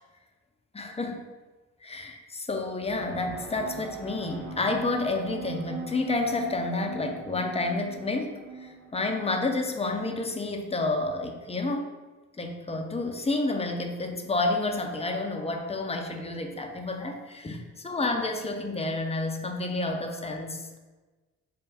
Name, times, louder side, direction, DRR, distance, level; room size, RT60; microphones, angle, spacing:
voice 1, 0.7-1.2 1.8-8.3 8.6-11.9 12.4-20.8, left 2 dB, 15° left, 4 dB, 0.6 m, -30 dB
sound 1, 2.8-10.4, right 4 dB, 90° right, 1.4 m, -41 dB
4.9 x 2.2 x 4.1 m, 1.2 s
hypercardioid pair, 45°, 40 cm